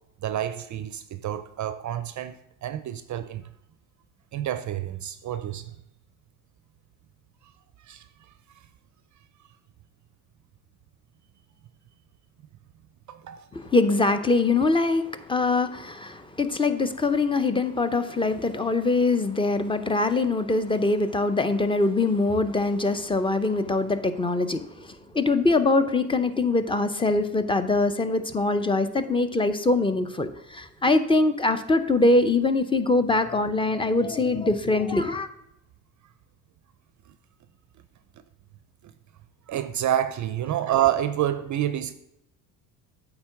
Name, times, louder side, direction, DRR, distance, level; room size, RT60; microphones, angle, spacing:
voice 1, 0.2-3.4 4.3-5.7 7.8-8.0 13.1-13.5 38.8-38.9 39.5-41.9, right 11 dB, 40° right, 0.5 m, -28 dB
voice 2, 13.5-35.3, left 3 dB, 10° left, 0.6 m, -23 dB
8.8 x 3.9 x 5.8 m
hypercardioid pair, 70°, 46 cm